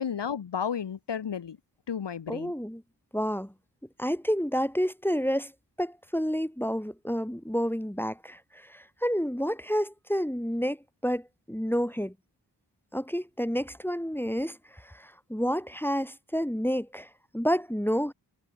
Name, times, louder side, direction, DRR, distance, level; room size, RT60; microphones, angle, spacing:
voice 1, 0.0-1.6 1.9-2.5, left 7 dB, 75° left, 1.2 m, -32 dB
voice 2, 2.3-2.8 3.1-3.5 4.0-5.5 5.8-12.1 12.9-18.1, equal, 5° left, 3.0 m, -30 dB
cardioid pair, 40°, 43 cm